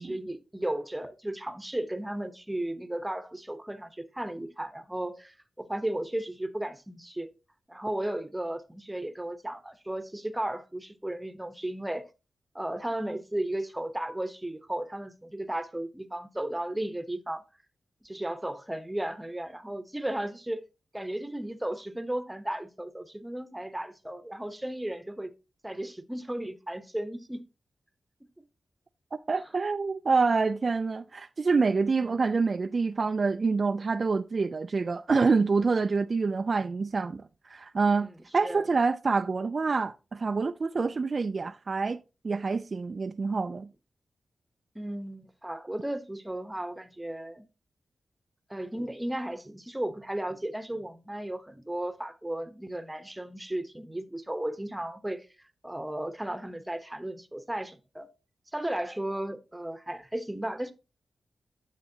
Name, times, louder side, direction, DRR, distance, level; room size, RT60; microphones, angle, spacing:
voice 1, 0.0-7.3 7.7-12.1 12.5-17.4 18.0-20.6 20.9-25.3 25.6-27.4 28.4-28.5 32.0-32.2 38.0-38.2 38.4-38.6 44.7-47.5 48.5-55.3 55.6-58.1 58.5-60.7, right 1 dB, 10° right, 0.9 m, -35 dB
voice 2, 29.1-43.7, right 4 dB, 50° right, 0.3 m, -27 dB
9.4 x 6.7 x 2.7 m
cardioid pair, 80°, 0 cm